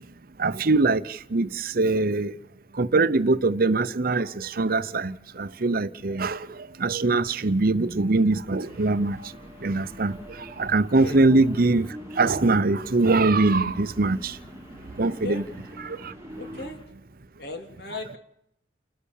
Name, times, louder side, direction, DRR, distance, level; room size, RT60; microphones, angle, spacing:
voice 1, 0.4-1.0 1.3-1.5 1.8-2.3 2.8-4.3 4.6-5.1 5.4-6.4 6.8-9.1 9.6-10.1 10.6-11.9 12.2-14.2 15.0-15.4, right 3 dB, 55° right, 0.8 m, -22 dB
sound 1, 5.3-6.7 7.0-7.1 7.7-16.7, right 1 dB, 15° right, 1.4 m, -45 dB
sound 2, 8.6-16.9, left 1 dB, 30° left, 3.2 m, -48 dB
voice 2, 16.3-16.8 17.4-18.2, left 2 dB, 65° left, 3.2 m, -36 dB
30.0 x 13.0 x 7.3 m
head